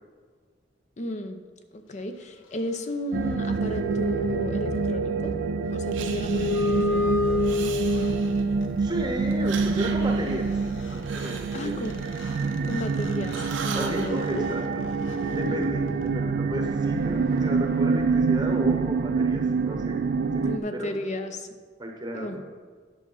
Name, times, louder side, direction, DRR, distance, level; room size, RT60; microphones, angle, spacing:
voice 1, 1.0-1.4 1.7-5.3 5.7-7.1 11.5-12.0 12.6-14.8 15.4-15.7 20.4-21.5 22.1-22.4, left 1 dB, 40° left, 8 dB, 0.6 m, -34 dB
sound 1, 3.1-20.6, right 4 dB, 55° right, 0.3 m, -27 dB
sound 2, 3.3-8.7 10.5-10.6 10.8-16.3, left 2 dB, 80° left, 0.9 m, -31 dB
Breathing, 5.9-6.9 7.4-8.6 9.3-12.9 13.2-14.1, right 6 dB, 75° right, 0.8 m, -39 dB
voice 2, 8.8-10.5 10.9-11.8 13.7-14.8 15.3-21.0 21.8-22.4, equal, 20° right, 1 dB, 0.9 m, -33 dB
10.0 x 5.9 x 5.5 m, 1.6 s
head